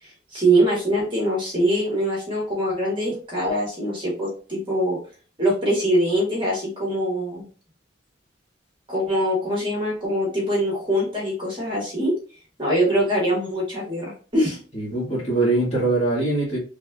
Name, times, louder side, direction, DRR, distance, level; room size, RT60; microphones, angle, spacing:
voice 1, 0.0-5.0 5.4-7.5 8.9-12.1 12.6-14.6, right 1 dB, 25° right, -4 dB, 1.5 m, -23 dB
voice 2, 14.7-16.6, right 2 dB, 30° left, -7 dB, 1.6 m, -22 dB
3.5 x 3.2 x 2.3 m, 0.38 s
head